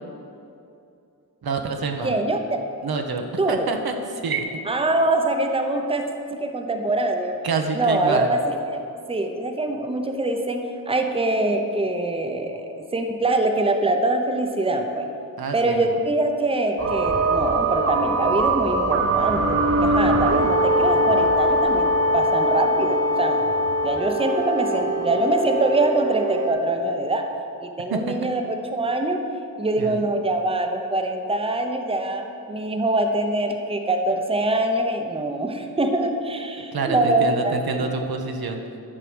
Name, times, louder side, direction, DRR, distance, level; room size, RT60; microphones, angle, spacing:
voice 1, 1.4-2.2 2.8-3.9 4.2-4.5 7.4-8.3 15.4-16.0 27.9-28.1 29.8-30.0 36.7-38.6, right 4 dB, 75° right, 4 dB, 0.9 m, -27 dB
voice 2, 2.0-2.4 3.4-3.7 4.7-6.0 6.3-7.4 7.7-8.4 8.7-8.8 9.1-15.1 15.5-23.4 23.8-27.3 27.6-28.4 28.7-29.2 29.6-37.9, right 2 dB, 15° right, 4 dB, 0.7 m, -24 dB
sound 1, 16.8-26.5, right 1 dB, 40° right, 0.9 m, -22 dB
sound 2, 17.1-21.1, left 2 dB, 20° left, 1.4 m, -45 dB
10.0 x 4.6 x 6.2 m, 2.6 s
cardioid pair, 65°, 37 cm